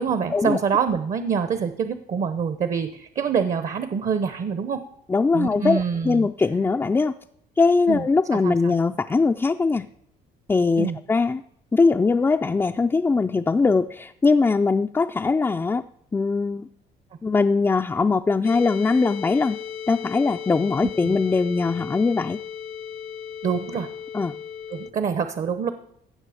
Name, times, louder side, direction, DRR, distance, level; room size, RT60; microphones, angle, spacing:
voice 1, 0.0-4.8 5.3-6.3 7.9-8.1 8.3-8.7 10.8-11.0 21.0-21.2 23.4-23.9 24.7-25.7, right 6 dB, 45° right, 11 dB, 0.8 m, -25 dB
voice 2, 5.1-7.1 7.6-9.9 10.5-11.4 11.7-15.8 16.1-16.7 17.2-19.6 19.9-22.4 24.1-24.3, left 4 dB, 15° left, 6 dB, 0.3 m, -21 dB
sound 1, 18.4-24.9, left 8 dB, 65° left, 0.8 m, -36 dB
16.5 x 6.2 x 4.9 m, 0.73 s
cardioid pair, 110°, 17 cm